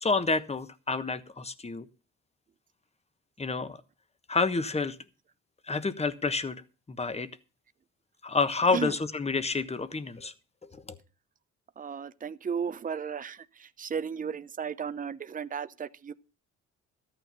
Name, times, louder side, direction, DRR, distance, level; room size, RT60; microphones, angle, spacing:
voice 1, 0.0-1.8 3.4-3.8 4.3-5.0 5.7-6.6 6.9-7.3 8.2-10.3 10.7-11.0, left 4 dB, 20° left, 1.2 m, -29 dB
voice 2, 11.8-16.1, right 6 dB, 30° right, 0.7 m, -35 dB
13.5 x 9.1 x 5.4 m
cardioid pair, 90°, 30 cm